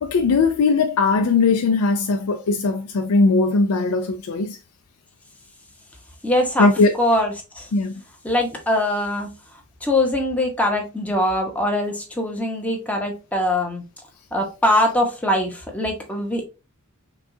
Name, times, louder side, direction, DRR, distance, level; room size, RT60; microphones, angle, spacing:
voice 1, 0.0-4.6 6.6-6.9 7.7-8.0, left 3 dB, 80° left, 0.4 m, -19 dB
voice 2, 6.2-6.7 7.0-7.7 8.2-9.3 9.8-13.8 14.3-16.4, left 1 dB, 5° left, 0.9 m, -22 dB
6.0 x 2.3 x 2.6 m
head